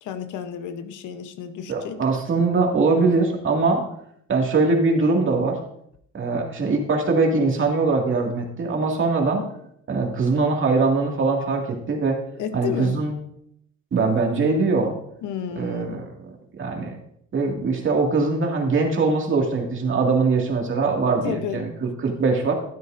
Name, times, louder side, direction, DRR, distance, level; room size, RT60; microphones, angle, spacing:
voice 1, 0.0-2.0 9.4-9.5 12.4-13.0 15.2-16.1 21.2-21.7, left 8 dB, 85° left, 9 dB, 0.9 m, -32 dB
voice 2, 1.7-3.8 4.3-5.6 6.1-9.4 9.9-12.2 12.5-13.1 13.9-14.9 15.5-16.0 16.6-16.9 17.3-22.5, right 3 dB, 40° right, 1 dB, 2.1 m, -22 dB
12.5 x 8.4 x 2.6 m, 0.71 s
cardioid pair, 115°, 30 cm